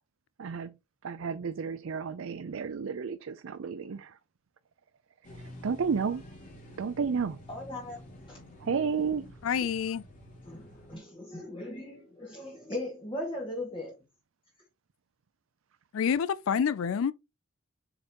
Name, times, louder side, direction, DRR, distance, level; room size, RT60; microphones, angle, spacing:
voice 1, 0.4-0.7 1.0-4.2 5.6-6.2 6.8-7.4 8.6-9.3, right 6 dB, 70° right, 0.5 m, -31 dB
sound 1, 5.2-11.0, equal, 40° left, 3.0 m, -49 dB
voice 2, 7.5-8.0 8.3-8.4 10.5-13.9, left 1 dB, 25° left, 2.1 m, -38 dB
voice 3, 9.4-10.0 15.9-17.1, left 7 dB, 70° left, 0.4 m, -27 dB
7.6 x 4.4 x 2.9 m
head